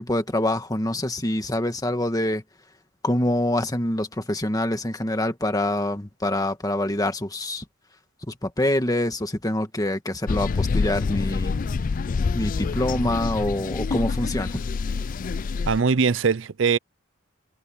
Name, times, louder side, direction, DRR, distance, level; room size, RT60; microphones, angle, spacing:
voice 1, 0.0-2.4 3.0-7.6 8.3-11.6 12.3-14.6, left 1 dB, 20° left, 1.8 m, -25 dB
sound 1, 10.3-15.8, left 4 dB, 40° left, 0.4 m, -26 dB
voice 2, 15.7-16.8, right 5 dB, 65° right, 0.6 m, -21 dB
head